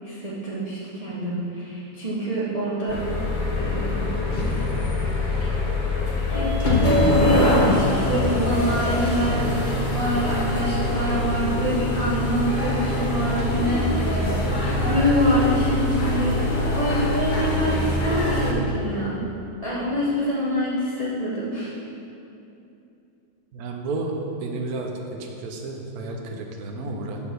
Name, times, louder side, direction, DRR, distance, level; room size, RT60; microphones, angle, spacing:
voice 1, 0.0-3.0 3.5-4.1 5.4-5.5 6.3-14.3 14.7-19.2 19.6-21.7, equal, 40° right, -9 dB, 0.5 m, -26 dB
sound 1, 2.9-18.5, left 2 dB, 60° left, 0.5 m, -23 dB
voice 2, 23.5-24.1 24.4-24.9 25.2-27.2, right 3 dB, 60° right, 2 dB, 1.1 m, -31 dB
5.5 x 4.5 x 6.2 m, 2.7 s
omnidirectional pair, 2.1 m